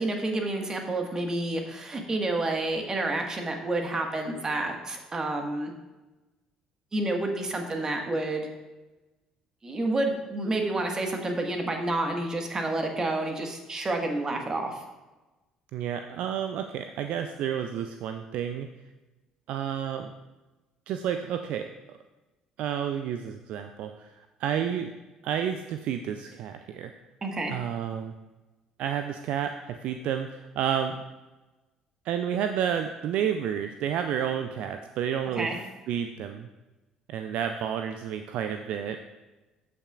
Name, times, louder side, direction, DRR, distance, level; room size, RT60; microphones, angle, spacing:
voice 1, 0.0-5.7 6.9-8.5 9.6-14.8 27.2-27.5 35.4-35.6, right 2 dB, 30° right, 3 dB, 1.6 m, -29 dB
voice 2, 15.7-18.7 19.5-20.1 20.9-21.8 22.6-24.9 25.2-26.9 27.5-28.1 28.8-31.0 32.0-35.5 35.9-36.5 37.1-39.0, right 9 dB, 60° right, 8 dB, 0.4 m, -30 dB
14.0 x 5.9 x 2.4 m, 1.1 s
figure-of-eight pair, 55°, 2 cm